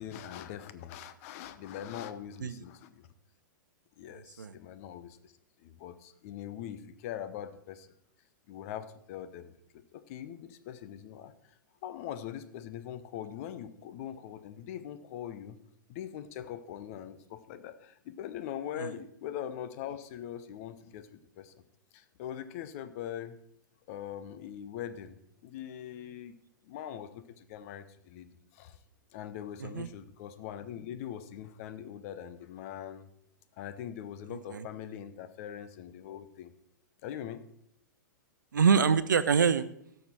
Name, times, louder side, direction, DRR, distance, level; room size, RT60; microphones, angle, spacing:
voice 1, 0.0-3.1 4.0-5.3 5.6-7.9 8.5-11.6 11.8-15.6 15.9-21.6 21.9-23.4 23.9-25.2 25.4-26.4 26.6-28.3 28.5-28.8 29.1-33.1 33.6-36.5 37.0-37.4, left 10 dB, 45° left, 12 dB, 0.9 m, -42 dB
voice 2, 4.1-4.5 18.8-18.9 29.6-29.9 34.3-34.7 38.5-39.6, right 6 dB, 75° right, 14 dB, 0.7 m, -26 dB
16.5 x 6.7 x 4.5 m, 0.73 s
figure-of-eight pair, 105°, 10 cm